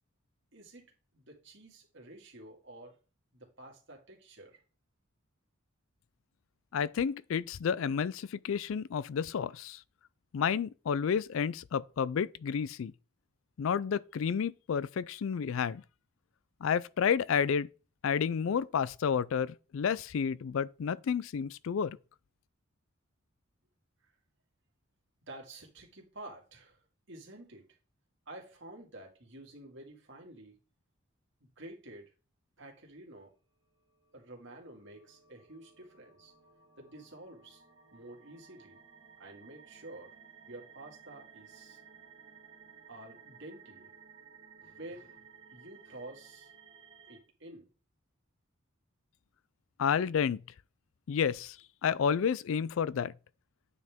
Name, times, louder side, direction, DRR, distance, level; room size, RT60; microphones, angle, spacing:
voice 1, 0.5-3.0 3.3-4.6 24.0-24.1 25.3-26.8 27.1-27.8 28.3-30.6 31.4-32.1 32.6-33.3 34.1-36.3 36.8-37.6 37.9-38.8 39.2-40.1 40.5-41.8 42.9-43.9 44.6-45.3 45.5-46.5 47.1-47.7, right 1 dB, 60° right, 2.2 m, -50 dB
voice 2, 6.7-9.8 10.3-12.9 13.6-15.8 16.6-17.7 18.0-22.0 49.8-50.4 51.1-51.6 51.8-53.1, left 7 dB, 70° left, 0.4 m, -30 dB
sound 1, 33.9-47.2, right 6 dB, 25° right, 1.9 m, -57 dB
9.3 x 5.4 x 3.6 m
head